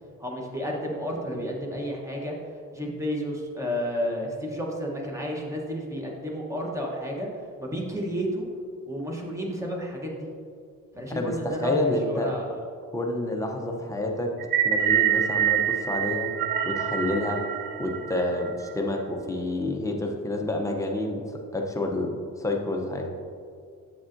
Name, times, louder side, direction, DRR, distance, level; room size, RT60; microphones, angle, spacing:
voice 1, 0.2-2.3 2.7-7.3 7.6-8.5 8.9-10.3 10.9-12.6, equal, 10° right, -1 dB, 0.9 m, -31 dB
voice 2, 11.1-12.3 12.9-14.4 14.6-16.3 16.6-17.4 17.8-23.1, left 2 dB, 10° left, 1 dB, 0.5 m, -28 dB
sound 1, 14.4-18.7, right 10 dB, 80° right, 0.6 m, -26 dB
7.5 x 7.0 x 2.5 m, 2.3 s
cardioid pair, 155°, 33 cm